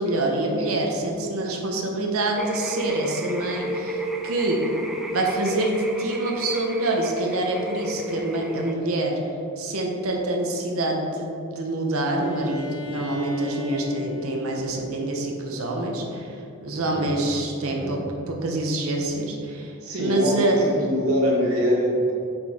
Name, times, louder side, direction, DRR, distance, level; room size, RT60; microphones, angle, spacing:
voice 1, 0.0-4.6 5.1-9.1 9.6-18.0 18.3-20.6, right 2 dB, 75° right, 1 dB, 0.9 m, -26 dB
sound 1, 2.4-8.7, right 1 dB, ahead, 0.4 m, -32 dB
Bowed string instrument, 12.2-16.0, left 6 dB, 75° left, 1.2 m, -37 dB
voice 2, 16.7-17.1 17.6-17.9 19.8-22.1, equal, 90° right, -3 dB, 1.5 m, -24 dB
7.7 x 4.5 x 3.5 m, 2.7 s
head